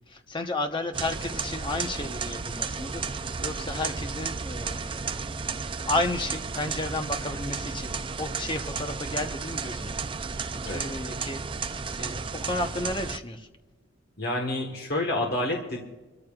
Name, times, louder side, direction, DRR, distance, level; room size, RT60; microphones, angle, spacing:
voice 1, 0.1-5.0 5.9-9.9 10.7-11.4 11.9-13.5, left 2 dB, 25° left, 5 dB, 1.0 m, -32 dB
sound 1, 0.9-13.2, right 5 dB, 25° right, 0.4 m, -33 dB
voice 2, 14.2-15.8, left 1 dB, 50° left, 1 dB, 1.5 m, -28 dB
26.0 x 14.0 x 2.5 m, 1.2 s
head